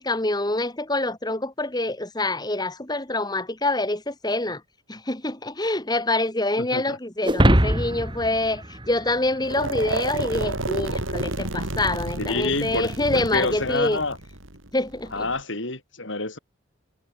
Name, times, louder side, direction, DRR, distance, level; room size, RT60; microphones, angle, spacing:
voice 1, 0.0-4.6 4.9-14.0 14.7-15.3, left 2 dB, 20° left, 2.1 m, -26 dB
voice 2, 6.6-7.0 12.2-14.2 15.1-16.4, left 3 dB, 70° left, 4.9 m, -28 dB
sound 1, 7.2-9.8, right 1 dB, 25° right, 3.3 m, -22 dB
sound 2, 9.4-15.4, right 2 dB, 80° right, 4.2 m, -30 dB
head